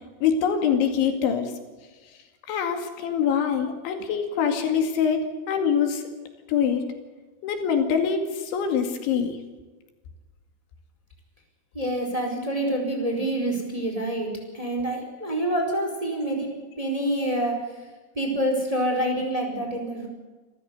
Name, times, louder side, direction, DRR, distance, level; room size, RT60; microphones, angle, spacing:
voice 1, 0.2-1.5 2.5-6.1 6.5-6.8 7.4-9.4, left 7 dB, 75° left, 6 dB, 4.5 m, -24 dB
voice 2, 11.7-14.3 14.5-17.5 18.1-20.1, right 1 dB, 5° right, 2 dB, 4.2 m, -27 dB
28.0 x 14.0 x 8.2 m, 1.3 s
omnidirectional pair, 5.4 m